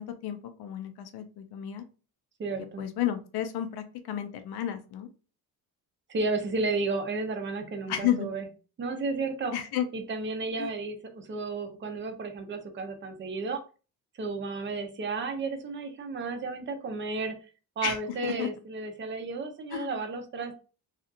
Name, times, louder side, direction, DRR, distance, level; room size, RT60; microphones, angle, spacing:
voice 1, 0.0-1.8 2.8-5.1 7.9-8.3 9.5-9.9 10.6-10.7 17.8-18.0 18.2-18.5 19.7-20.0, left 11 dB, 75° left, 7 dB, 0.6 m, -32 dB
voice 2, 2.4-2.9 6.1-8.5 8.8-9.5 9.9-13.6 14.2-17.4 17.8-20.6, right 3 dB, 30° right, 5 dB, 0.5 m, -33 dB
2.8 x 2.4 x 2.4 m, 0.34 s
cardioid pair, 160°, 39 cm